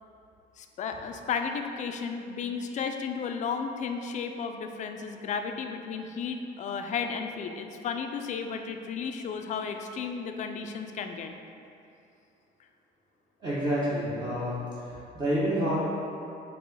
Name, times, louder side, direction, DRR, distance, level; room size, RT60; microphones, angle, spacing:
voice 1, 0.6-11.3, left 6 dB, 45° left, 6 dB, 0.4 m, -33 dB
voice 2, 13.4-14.5 14.8-15.7, right 1 dB, 25° right, -11 dB, 1.0 m, -28 dB
4.5 x 2.9 x 4.0 m, 2.6 s
cardioid pair, 110°, 17 cm